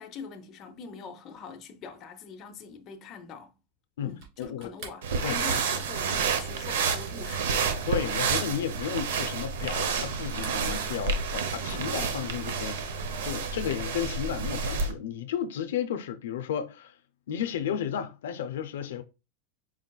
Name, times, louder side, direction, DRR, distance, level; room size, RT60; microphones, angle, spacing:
voice 1, 0.0-3.5 4.0-7.5, left 5 dB, 30° left, 0.6 m, -43 dB
voice 2, 4.0-4.7 5.2-5.4 7.8-16.9 17.3-19.0, left 9 dB, 90° left, 0.4 m, -33 dB
sound 1, 4.1-10.1 10.3-11.4, right 4 dB, 50° right, 2.1 m, -49 dB
sound 2, 5.0-14.9, right 5 dB, 85° right, 0.7 m, -30 dB
4.6 x 3.8 x 2.3 m
supercardioid pair, 155°, 0 cm